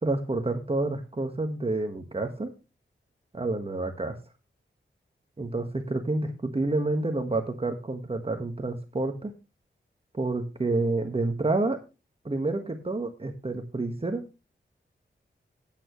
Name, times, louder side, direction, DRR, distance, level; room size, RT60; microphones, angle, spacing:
voice 1, 0.0-2.5 3.3-4.2 5.4-9.3 10.2-11.8 12.2-14.2, right 2 dB, 30° right, 5 dB, 1.5 m, -29 dB
13.5 x 8.9 x 3.1 m, 0.29 s
wide cardioid pair, 110°, 20 cm